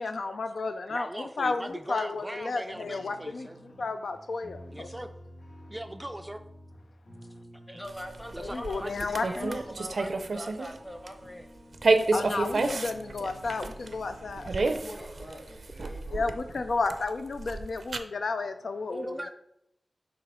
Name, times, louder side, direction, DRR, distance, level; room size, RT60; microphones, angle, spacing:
voice 1, 0.0-3.5 3.8-4.9 8.4-9.6 12.1-14.5 16.1-19.3, left 3 dB, 85° left, 8 dB, 0.3 m, -32 dB
voice 2, 0.9-3.6 4.7-5.1 5.7-6.4 7.7-7.8 8.3-9.1 18.9-19.3, right 1 dB, 15° right, 7 dB, 0.3 m, -39 dB
sound 1, 2.7-14.7, right 1 dB, 55° left, 2.3 m, -51 dB
voice 3, 7.7-11.5, equal, 10° left, 4 dB, 0.8 m, -42 dB
sound 2, 7.9-10.8 11.1-11.3 11.7-18.0, right 3 dB, 75° right, 0.5 m, -30 dB
voice 4, 14.3-16.3, equal, 40° left, 0 dB, 1.9 m, -46 dB
6.9 x 2.8 x 5.4 m, 0.80 s
wide cardioid pair, 65°, 0 cm